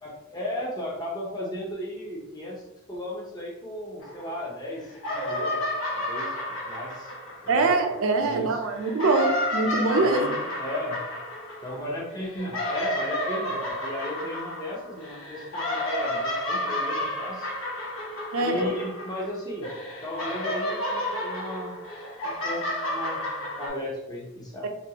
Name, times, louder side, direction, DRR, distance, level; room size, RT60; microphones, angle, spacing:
voice 1, 0.0-2.6 2.9-5.6 5.9-6.4 6.6-7.1 7.4-7.7 8.2-8.6 9.6-9.7 10.0-11.0 11.6-17.5 18.4-19.7 20.0-21.8 22.2-24.7, left 1 dB, 20° left, -3 dB, 0.6 m, -35 dB
sound 1, 4.0-4.7 4.9-8.2 8.8-19.3 19.6-23.7, left 1 dB, 90° left, 0.8 m, -31 dB
voice 2, 7.5-10.3 18.3-18.7 24.6-24.7, right 3 dB, 80° right, 4 dB, 0.4 m, -23 dB
2.5 x 2.3 x 2.8 m, 0.91 s
head